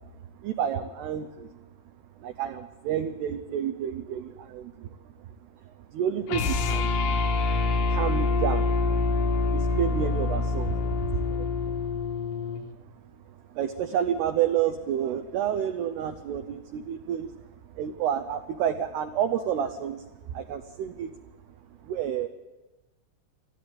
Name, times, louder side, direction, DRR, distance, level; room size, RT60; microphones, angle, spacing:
voice 1, 0.4-1.5 2.2-4.9 5.7-6.9 7.9-8.7 9.5-11.5 13.5-17.3 17.8-21.1 21.8-22.3, right 9 dB, 80° right, 8 dB, 2.3 m, -30 dB
sound 1, 6.3-12.7, left 3 dB, 70° left, 4.0 m, -26 dB
21.5 x 14.5 x 9.5 m, 1.2 s
omnidirectional pair, 5.8 m